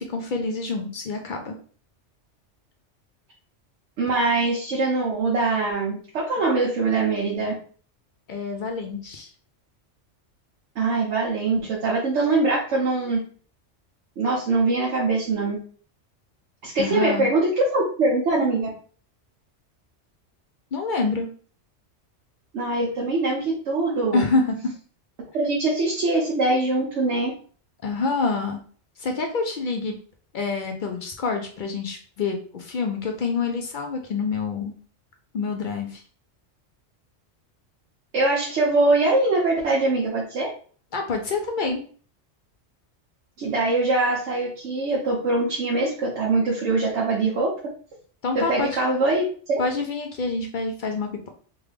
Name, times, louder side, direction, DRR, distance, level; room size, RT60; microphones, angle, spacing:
voice 1, 0.0-1.5 8.3-9.3 16.8-17.3 20.7-21.3 24.1-24.6 27.8-28.6 29.0-29.9 30.3-34.7 35.3-36.0 40.9-41.8 48.2-48.7 49.6-51.3, left 4 dB, 55° left, 4 dB, 0.6 m, -27 dB
voice 2, 4.0-7.5 10.8-13.2 14.2-15.6 16.6-18.7 22.5-24.3 25.3-27.3 38.1-40.5 43.4-47.5 48.3-49.2 49.5-49.6, right 3 dB, 75° right, -4 dB, 1.1 m, -23 dB
3.5 x 2.3 x 3.3 m, 0.43 s
omnidirectional pair, 1.2 m